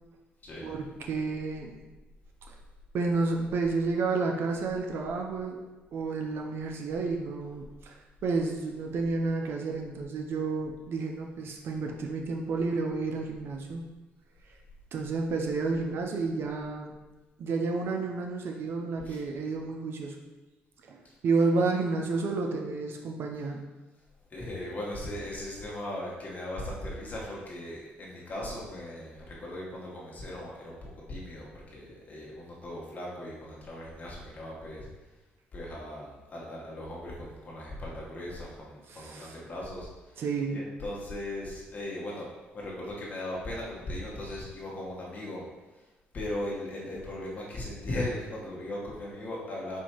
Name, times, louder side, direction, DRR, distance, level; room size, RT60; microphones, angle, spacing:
voice 1, 0.6-1.8 2.5-2.6 2.9-5.6 5.9-8.0 8.2-13.8 14.9-16.9 17.4-20.2 20.9-23.6 38.9-39.4 40.2-40.6, right 3 dB, 65° right, 2 dB, 0.5 m, -30 dB
voice 2, 24.3-34.9 35.5-40.1 40.5-42.3 42.5-45.4 46.1-49.8, left 1 dB, 40° left, -4 dB, 1.2 m, -38 dB
4.4 x 2.7 x 4.4 m, 1.1 s
cardioid pair, 95°, 4 cm